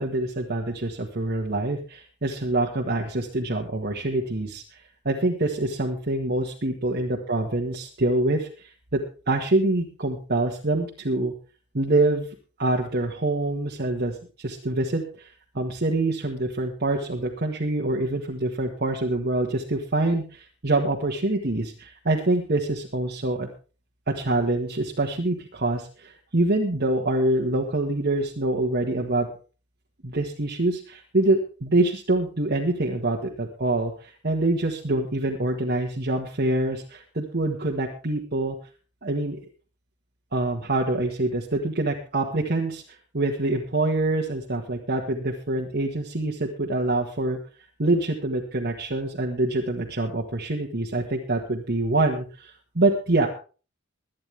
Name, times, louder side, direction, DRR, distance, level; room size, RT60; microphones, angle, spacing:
voice 1, 0.0-4.6 5.0-9.0 9.3-11.3 11.7-12.2 12.6-15.3 15.5-23.5 24.1-29.3 30.0-38.5 39.0-39.4 40.3-47.4 47.8-53.3, right 2 dB, 50° right, -1 dB, 1.6 m, -25 dB
22.0 x 9.5 x 3.5 m, 0.35 s
head